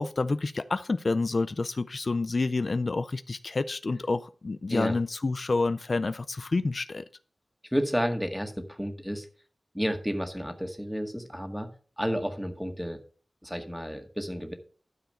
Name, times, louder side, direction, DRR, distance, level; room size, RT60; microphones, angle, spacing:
voice 1, 0.0-7.0, left 3 dB, 55° left, 13 dB, 0.4 m, -28 dB
voice 2, 7.7-9.3 9.7-11.7 12.0-13.0 13.4-14.5, equal, ahead, 6 dB, 1.8 m, -31 dB
12.5 x 4.8 x 6.5 m, 0.40 s
wide cardioid pair, 70°, 0 cm